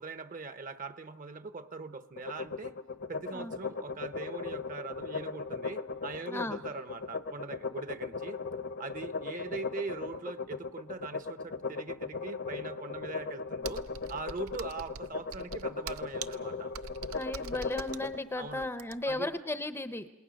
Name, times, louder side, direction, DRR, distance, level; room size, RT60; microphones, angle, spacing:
voice 1, 0.0-2.7 3.1-8.4 8.8-16.7 18.3-18.7 19.0-19.3, right 4 dB, 40° right, 11 dB, 0.9 m, -41 dB
sound 1, 2.2-18.2, left 4 dB, 55° left, 1.0 m, -38 dB
voice 2, 6.3-6.6 17.1-20.1, left 2 dB, 10° left, 10 dB, 0.7 m, -35 dB
Computer keyboard, 13.6-19.2, right 6 dB, 80° right, 0.7 m, -44 dB
29.0 x 19.5 x 6.4 m, 1.1 s
head